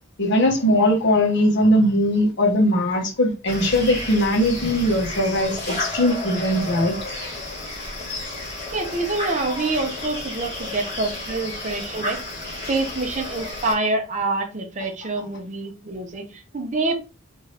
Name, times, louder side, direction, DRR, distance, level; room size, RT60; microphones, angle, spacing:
voice 1, 0.2-7.0 9.6-9.7, left 1 dB, 60° left, 1.2 m, -20 dB
sound 1, 3.5-13.7, left 2 dB, 30° left, 2.0 m, -32 dB
voice 2, 8.7-12.2 12.7-16.9, right 3 dB, 40° right, 0.8 m, -26 dB
3.7 x 2.6 x 3.3 m
head